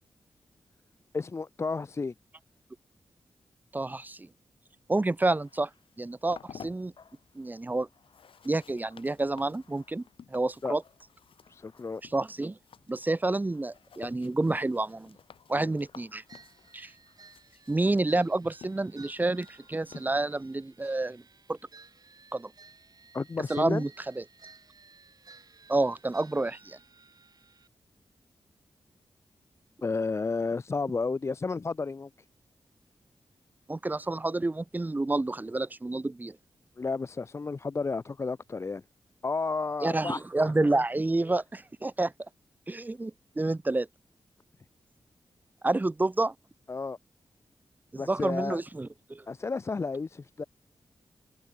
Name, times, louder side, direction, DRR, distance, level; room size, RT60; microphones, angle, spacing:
voice 1, 1.1-2.1 10.6-10.8 11.5-12.0 15.6-15.7 23.1-23.8 29.8-32.1 36.8-38.8 39.2-40.8 46.7-47.0 48.0-48.6 49.3-50.4, left 4 dB, 30° left, 0.3 m, -32 dB
voice 2, 3.7-4.3 4.9-5.7 6.0-6.9 7.4-7.9 8.4-10.0 10.3-10.8 12.1-12.6 12.9-15.2 15.5-16.2 16.7-16.9 17.7-21.2 21.5-21.6 22.3-22.5 23.5-23.9 24.2-24.3 25.7-26.8 33.7-36.4 39.8-42.1 42.7-43.9 45.6-46.3 47.9-49.2, right 2 dB, 20° right, 0.5 m, -29 dB
Bathtub (filling or washing), 5.3-12.6 13.1-14.4 15.0-18.2 19.3-20.3, left 5 dB, 65° left, 7.1 m, -67 dB
sound 1, 5.8-20.5, left 7 dB, 85° left, 4.0 m, -54 dB
sound 2, 16.3-27.7, right 4 dB, 50° right, 1.5 m, -56 dB
cardioid pair, 55°, 9 cm